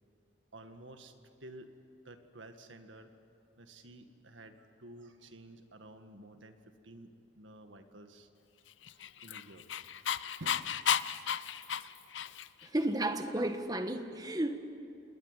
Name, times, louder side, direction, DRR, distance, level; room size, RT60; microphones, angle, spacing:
voice 1, 0.5-1.7 2.0-3.1 3.6-6.6 6.8-8.3 8.9-9.7 10.4-11.0 12.0-12.2, right 1 dB, 75° right, 1.8 m, -52 dB
Dog, 8.8-12.7, left 8 dB, 75° left, 0.6 m, -33 dB
voice 2, 12.6-14.6, right 1 dB, 20° right, 1.4 m, -33 dB
28.0 x 20.0 x 9.8 m
head